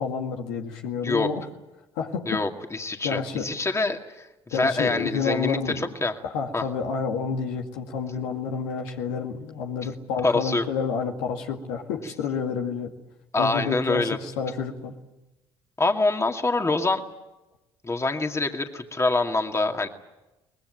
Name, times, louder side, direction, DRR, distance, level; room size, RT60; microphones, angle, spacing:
voice 1, 0.0-1.5 2.0-2.4 3.0-3.5 4.5-5.9 6.2-12.9 13.4-15.0, left 6 dB, 80° left, 2 dB, 2.2 m, -29 dB
voice 2, 2.3-6.1 6.5-6.6 10.2-10.7 13.3-14.2 15.8-17.1 17.8-19.9, left 3 dB, 25° left, 4 dB, 2.3 m, -25 dB
23.5 x 20.0 x 9.2 m, 1.0 s
hypercardioid pair, 60°, 12 cm